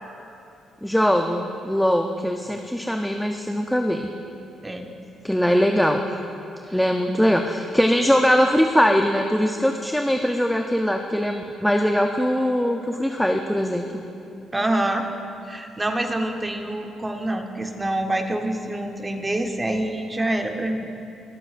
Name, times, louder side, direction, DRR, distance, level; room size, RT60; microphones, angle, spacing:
voice 1, 0.8-4.1 5.2-6.0 6.7-14.1, equal, 5° left, 4 dB, 0.5 m, -21 dB
voice 2, 14.5-15.0 15.5-20.9, right 1 dB, 20° right, 4 dB, 0.9 m, -26 dB
21.5 x 7.6 x 2.5 m, 2.7 s
cardioid pair, 90°, 0 cm